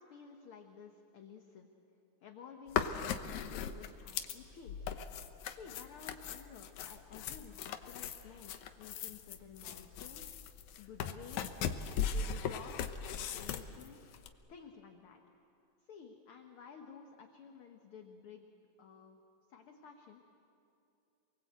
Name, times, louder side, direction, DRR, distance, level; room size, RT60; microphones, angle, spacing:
voice 1, 0.0-1.7 2.2-4.9 5.5-10.4 10.8-11.8 12.1-14.0 14.3-15.2 15.8-18.5 18.8-19.2 19.5-20.2, left 6 dB, 55° left, 3 dB, 1.9 m, -53 dB
sound 1, 2.7-14.3, left 7 dB, 80° left, 2.4 m, -39 dB
28.0 x 21.5 x 8.1 m, 2.7 s
omnidirectional pair, 3.3 m